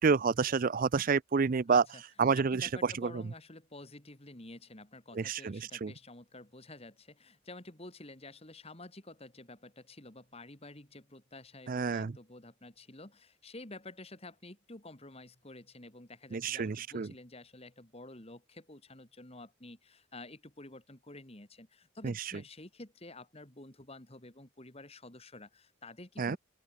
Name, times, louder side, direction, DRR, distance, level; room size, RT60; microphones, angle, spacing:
voice 1, 0.0-1.8 2.2-3.2 5.2-5.9 11.7-12.1 16.3-17.1 22.0-22.1 26.2-26.4, right 5 dB, 40° right, 0.4 m, -29 dB
voice 2, 1.7-2.0 2.3-26.4, left 2 dB, 30° left, 2.6 m, -50 dB
open air
head